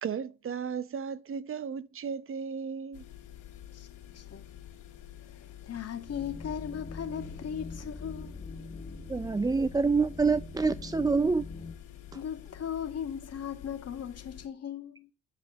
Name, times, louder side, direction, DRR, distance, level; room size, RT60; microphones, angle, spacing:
voice 1, 0.0-3.1, right 6 dB, 45° right, 0.8 m, -35 dB
sound 1, 2.9-14.5, left 11 dB, 85° left, 2.9 m, -49 dB
voice 2, 4.1-4.5 5.3-8.4 12.1-15.1, left 8 dB, 55° left, 2.2 m, -38 dB
sound 2, 6.0-11.8, left 3 dB, 35° left, 1.3 m, -43 dB
voice 3, 9.1-11.5, right 4 dB, 15° right, 0.4 m, -26 dB
10.5 x 5.0 x 6.9 m
cardioid pair, 90°, 30 cm